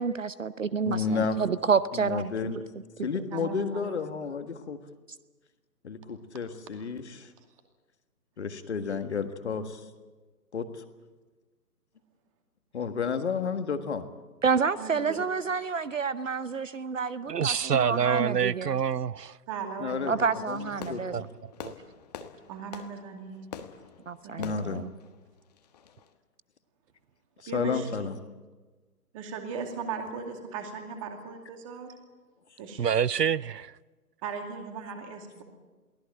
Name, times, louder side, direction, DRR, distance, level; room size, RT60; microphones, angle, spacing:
voice 1, 0.0-2.3 14.4-18.8 20.1-21.2 24.1-24.9, right 5 dB, 55° right, 0.8 m, -29 dB
voice 2, 0.9-1.4 1.9-2.6 3.0-4.8 5.8-7.3 8.4-9.8 10.5-10.7 12.7-14.0 19.8-20.2 20.5-20.6 20.9-21.2 24.4-24.8 27.4-28.2, left 5 dB, 45° left, 1.7 m, -31 dB
voice 3, 3.3-3.8 14.8-15.2 19.5-21.0 22.5-23.5 24.2-24.3 27.5-28.0 29.1-31.9 32.6-32.8 34.2-35.4, right 5 dB, 20° right, 2.5 m, -38 dB
voice 4, 17.3-19.4 21.1-21.2 21.6-21.7 32.8-33.7, right 7 dB, 85° right, 0.6 m, -26 dB
Fireworks, 20.5-26.1, left 6 dB, 25° left, 1.3 m, -45 dB
23.0 x 16.5 x 9.0 m
figure-of-eight pair, 140°, 47 cm